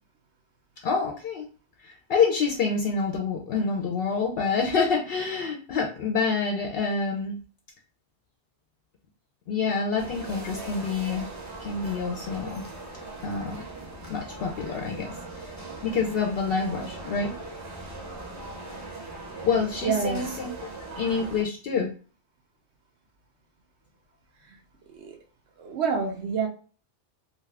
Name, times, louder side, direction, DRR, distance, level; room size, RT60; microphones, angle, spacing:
voice 1, 0.8-1.5 1.8-7.4 9.5-11.3 11.6-12.6 13.2-13.6 14.1-15.5 15.8-17.3 19.4-20.5 21.0-21.9, left 5 dB, 65° left, 2 dB, 0.7 m, -27 dB
sound 1, 10.0-21.4, right 2 dB, 20° right, 0.6 m, -40 dB
voice 2, 19.8-20.4 24.4-24.6 24.9-25.2 25.6-26.5, right 5 dB, 80° right, 1 dB, 0.9 m, -28 dB
2.6 x 2.3 x 3.3 m, 0.38 s
omnidirectional pair, 1.1 m